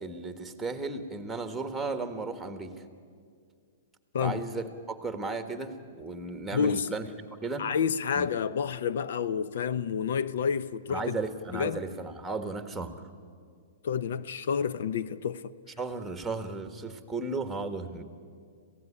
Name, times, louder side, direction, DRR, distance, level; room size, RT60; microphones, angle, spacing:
voice 1, 0.0-2.8 4.2-7.0 7.4-7.7 8.1-8.3 10.9-13.0 15.8-18.0, right 3 dB, 5° right, 1.5 m, -35 dB
voice 2, 6.5-6.9 7.6-11.2 11.5-11.8 13.8-15.5, left 7 dB, 70° left, 0.7 m, -29 dB
26.0 x 16.5 x 9.8 m
hypercardioid pair, 150°, 0 cm